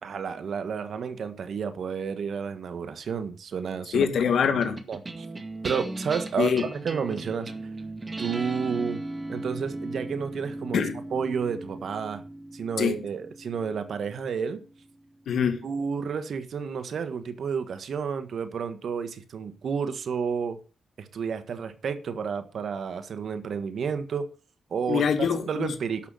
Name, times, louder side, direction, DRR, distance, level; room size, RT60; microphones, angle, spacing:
voice 1, 0.0-4.1 4.9-5.3 5.6-7.5 8.2-9.0 9.3-10.8 11.1-12.2 12.5-14.6 15.6-20.6 21.0-24.3 24.7-25.1 25.5-26.0, right 6 dB, 70° right, 1.5 m, -31 dB
voice 2, 3.9-4.8 6.4-6.6 10.7-11.0 12.8-13.0 15.3-15.6 24.9-25.7, left 7 dB, 75° left, 2.0 m, -24 dB
sound 1, 4.6-15.2, right 2 dB, 30° right, 2.0 m, -38 dB
12.0 x 6.4 x 6.3 m
cardioid pair, 55°, 0 cm